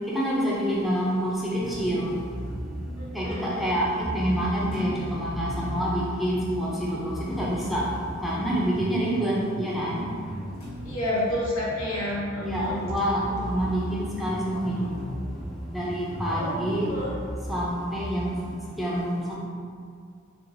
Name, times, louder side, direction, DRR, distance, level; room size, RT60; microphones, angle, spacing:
voice 1, 0.1-2.2 3.1-10.0 12.4-14.9 15.7-16.9 17.5-18.3 18.8-19.4, equal, ahead, -6 dB, 0.5 m, -27 dB
sound 1, 1.5-18.4, equal, 55° left, 1.1 m, -36 dB
voice 2, 3.0-3.8 10.8-12.8 16.3-17.2, left 1 dB, 85° left, -6 dB, 1.0 m, -30 dB
4.3 x 2.3 x 2.7 m, 2.2 s
head